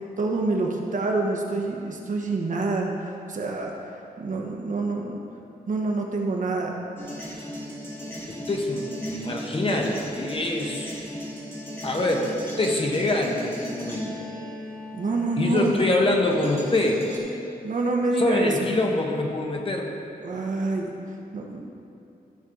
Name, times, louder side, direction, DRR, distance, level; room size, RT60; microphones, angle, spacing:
voice 1, 0.0-3.7 4.2-5.2 5.7-6.8 14.9-15.8 17.6-18.7 20.2-20.9 21.3-21.7, right 2 dB, 55° right, 1 dB, 1.1 m, -26 dB
sound 1, 7.0-16.0 16.3-17.2, equal, 15° left, 2.1 m, -37 dB
voice 2, 8.3-11.2 11.8-14.3 15.4-17.0 18.2-19.9, left 2 dB, 35° left, 1 dB, 1.0 m, -25 dB
13.0 x 6.2 x 3.9 m, 2.7 s
wide cardioid pair, 130°, 16 cm